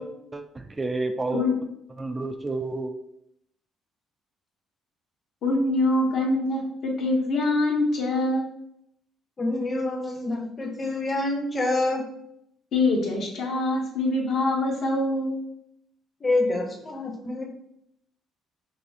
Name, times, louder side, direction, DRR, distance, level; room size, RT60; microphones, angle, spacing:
voice 1, 0.3-1.4 2.0-3.0, right 2 dB, 20° right, 6 dB, 0.3 m, -30 dB
voice 2, 5.4-8.5 12.7-15.4, left 2 dB, 65° left, -1 dB, 1.1 m, -24 dB
voice 3, 9.4-12.0 16.2-17.4, left 2 dB, 30° left, 1 dB, 0.9 m, -27 dB
5.2 x 2.0 x 2.8 m, 0.76 s
cardioid pair, 100°, 0 cm